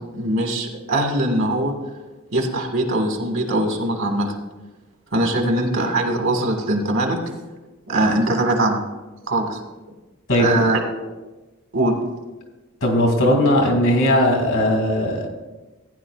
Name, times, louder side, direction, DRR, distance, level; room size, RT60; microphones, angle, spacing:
voice 1, 0.1-1.7 2.3-4.3 5.1-7.2 7.9-8.8 9.3-9.6 10.3-10.8 11.7-11.9, right 1 dB, 70° right, 2 dB, 1.7 m, -21 dB
voice 2, 10.3-11.0 12.8-15.3, left 1 dB, 80° left, 2 dB, 2.5 m, -19 dB
15.0 x 9.9 x 2.4 m, 1.2 s
head